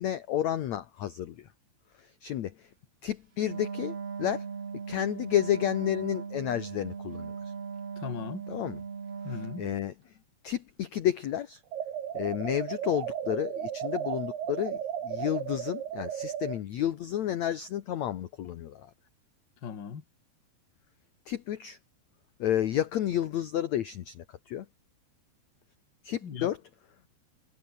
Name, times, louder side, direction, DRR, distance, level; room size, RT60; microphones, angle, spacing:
voice 1, 0.0-1.5 2.0-2.7 3.0-4.5 4.9-7.3 8.5-8.8 9.6-9.9 10.4-11.6 12.1-14.8 15.0-18.9 21.3-21.8 22.4-24.7 26.0-26.6, left 11 dB, 60° left, 1.9 m, -31 dB
Wind instrument woodwind instrument, 3.4-9.9, right 6 dB, 40° right, 3.8 m, -38 dB
voice 2, 8.0-8.5 9.2-9.6 19.6-20.0 26.2-26.5, left 7 dB, 40° left, 2.0 m, -38 dB
sound 1, 11.7-16.6, right 9 dB, 75° right, 4.4 m, -35 dB
omnidirectional pair, 4.6 m